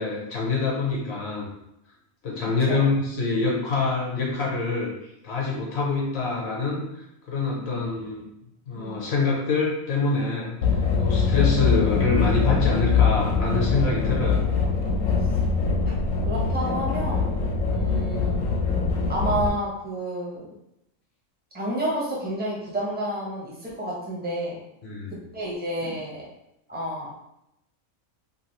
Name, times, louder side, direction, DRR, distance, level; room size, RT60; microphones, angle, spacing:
voice 1, 0.0-1.5 2.2-4.9 5.2-6.8 7.3-8.3 8.7-10.6 11.0-14.4 24.8-25.2 25.8-25.9, left 3 dB, 60° left, -3 dB, 0.9 m, -25 dB
sound 1, 10.6-19.5, left 5 dB, 80° left, 1.0 m, -23 dB
voice 2, 16.3-17.3 17.6-18.4 19.1-20.5 21.5-24.6 25.3-26.2 26.7-27.2, right 1 dB, 10° right, -5 dB, 0.5 m, -30 dB
2.9 x 2.4 x 3.0 m, 0.82 s
omnidirectional pair, 1.4 m